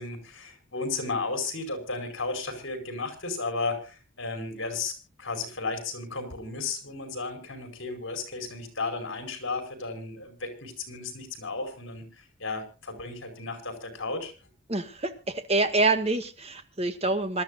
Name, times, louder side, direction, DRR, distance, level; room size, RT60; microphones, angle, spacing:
voice 1, 0.0-4.9 5.2-14.3, left 3 dB, 60° left, 7 dB, 5.0 m, -34 dB
voice 2, 14.7-17.4, right 2 dB, 30° right, 8 dB, 1.8 m, -26 dB
26.5 x 13.0 x 2.5 m, 0.33 s
head